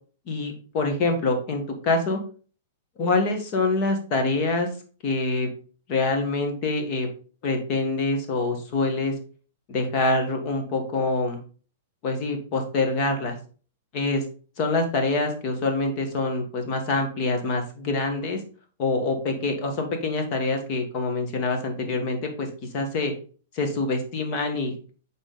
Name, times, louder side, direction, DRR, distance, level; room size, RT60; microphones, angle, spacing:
voice 1, 0.3-2.2 3.0-4.7 5.0-5.5 5.9-7.1 7.4-9.1 9.7-11.4 12.0-13.3 13.9-14.2 14.6-18.4 18.8-23.1 23.5-24.9, left 3 dB, 35° left, 4 dB, 1.4 m, -25 dB
6.2 x 4.0 x 3.8 m, 0.40 s
supercardioid pair, 165°, 0 cm